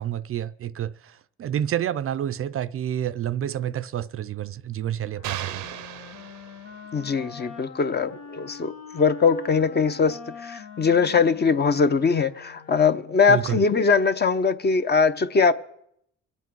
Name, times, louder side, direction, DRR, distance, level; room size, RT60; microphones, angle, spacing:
voice 1, 0.0-5.6 13.3-13.6, right 10 dB, 45° right, 0.5 m, -29 dB
Wind instrument woodwind instrument, 5.1-13.2, left 5 dB, 75° left, 1.6 m, -43 dB
sound 1, 5.2-7.0, right 12 dB, 90° right, 0.7 m, -36 dB
voice 2, 6.9-15.5, left 5 dB, 35° left, 0.7 m, -21 dB
22.5 x 8.3 x 4.6 m
cardioid pair, 90°, 30 cm